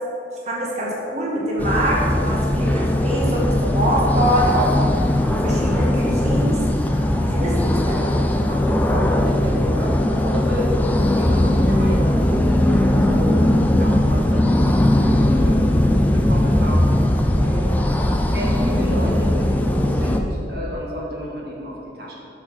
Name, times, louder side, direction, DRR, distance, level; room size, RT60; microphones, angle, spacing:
voice 1, 0.5-5.1 5.4-6.6 6.9-8.1, right 1 dB, 35° right, -4 dB, 1.4 m, -24 dB
sound 1, 1.6-20.2, left 1 dB, 10° left, 0.4 m, -19 dB
voice 2, 8.5-16.9 17.4-17.9 18.3-22.1, equal, 55° right, -3 dB, 1.4 m, -31 dB
6.6 x 6.2 x 6.2 m, 2.7 s
head